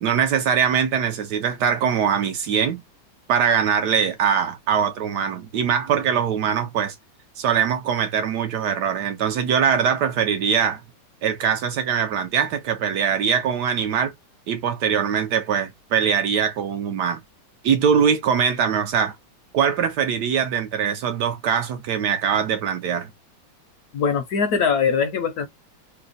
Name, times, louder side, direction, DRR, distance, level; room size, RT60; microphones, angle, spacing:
voice 1, 0.0-2.8 3.3-7.0 7.4-10.8 11.2-14.1 14.5-17.2 17.6-19.1 19.5-23.1, right 7 dB, 70° right, 1.1 m, -22 dB
voice 2, 23.9-25.5, left 6 dB, 70° left, 0.9 m, -21 dB
3.3 x 2.0 x 3.7 m
omnidirectional pair, 2.1 m